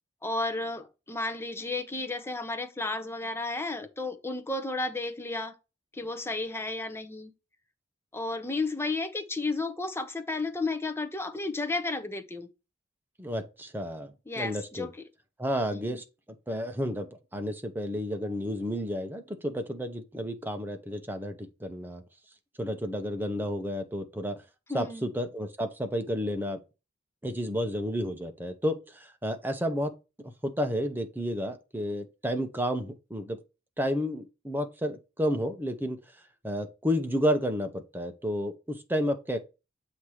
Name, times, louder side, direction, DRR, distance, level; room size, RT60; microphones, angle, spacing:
voice 1, 0.2-5.5 5.9-7.3 8.1-12.5 14.3-14.9 15.7-16.0 24.7-25.1, left 2 dB, 15° left, 0.7 m, -33 dB
voice 2, 13.2-14.9 15.4-16.0 16.5-17.1 17.3-22.0 22.6-24.4 24.7-26.6 27.2-29.9 30.2-33.4 33.8-36.0 36.4-39.4, equal, 10° right, 0.8 m, -31 dB
7.8 x 2.9 x 4.9 m
head